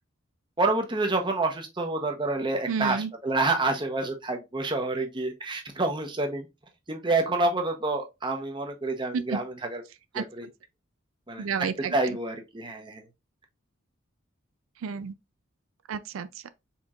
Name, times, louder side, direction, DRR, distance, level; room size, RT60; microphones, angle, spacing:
voice 1, 0.6-3.0 3.2-6.5 6.9-9.8 10.1-10.4 11.3-11.5 11.9-13.0, right 2 dB, 25° right, 0.8 m, -28 dB
voice 2, 2.7-3.1 9.1-9.4 10.1-10.5 11.4-12.2 14.8-15.1 15.9-16.5, right 6 dB, 85° right, 0.4 m, -31 dB
4.5 x 4.3 x 2.4 m
head